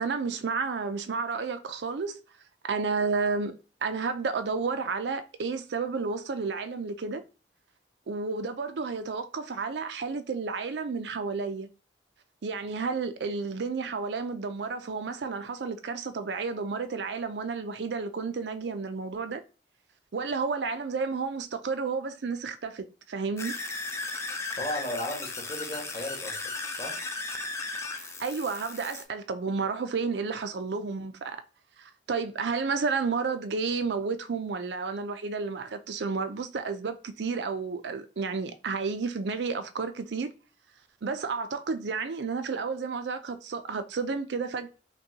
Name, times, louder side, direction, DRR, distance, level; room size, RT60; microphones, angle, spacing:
voice 1, 0.0-2.2 2.6-3.6 3.8-7.2 8.1-11.7 12.4-19.4 20.1-23.5 28.0-31.4 31.8-40.3 41.0-44.7, right 4 dB, 80° right, 0.5 m, -31 dB
sound 1, 23.4-29.0, left 3 dB, 15° left, 0.4 m, -36 dB
voice 2, 24.6-26.9, left 1 dB, 30° left, 1.2 m, -35 dB
5.2 x 2.2 x 2.8 m
head